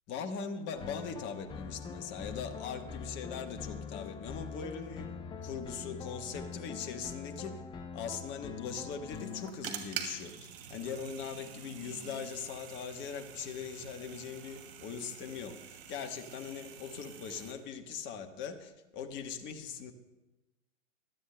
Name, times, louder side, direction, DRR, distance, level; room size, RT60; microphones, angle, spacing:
voice 1, 0.1-5.1 5.4-7.6 7.9-19.9, left 6 dB, 30° left, 5 dB, 1.2 m, -41 dB
sound 1, 0.7-9.5, left 6 dB, 10° left, 0.5 m, -43 dB
sound 2, 9.1-17.5, right 9 dB, 50° right, 2.5 m, -46 dB
22.0 x 13.0 x 2.2 m, 1.0 s
hypercardioid pair, 115°, 39 cm